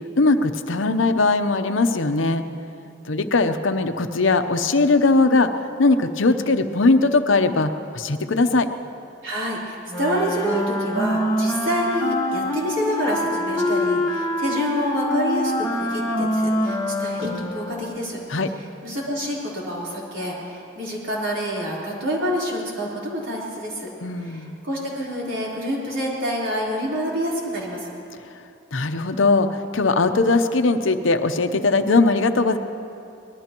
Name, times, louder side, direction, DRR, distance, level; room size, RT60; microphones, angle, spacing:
voice 1, 0.1-2.4 3.1-8.7 18.3-18.5 24.0-24.6 28.7-32.6, left 3 dB, 75° left, 8 dB, 0.8 m, -20 dB
voice 2, 9.2-18.2 18.6-23.9 24.2-27.9, equal, 75° right, -5 dB, 4.0 m, -27 dB
Wind instrument woodwind instrument, 9.9-18.1, left 1 dB, 20° left, 1.5 m, -25 dB
24.5 x 19.5 x 3.0 m, 2.6 s
head